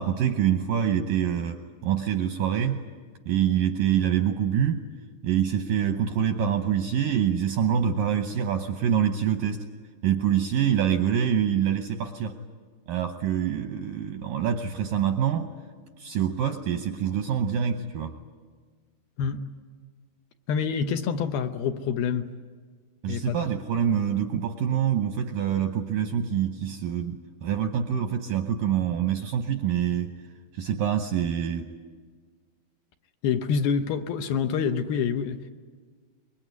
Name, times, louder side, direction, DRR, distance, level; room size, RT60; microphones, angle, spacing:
voice 1, 0.0-2.8 3.3-4.8 5.2-9.6 10.0-12.4 12.9-15.5 16.0-18.2 23.0-30.1 30.5-31.7, right 9 dB, 75° right, 2.0 m, -25 dB
voice 2, 20.5-22.3 23.1-23.4 24.0-24.1 33.2-35.5, left 6 dB, 75° left, 2.6 m, -27 dB
24.5 x 23.0 x 9.4 m
omnidirectional pair, 4.9 m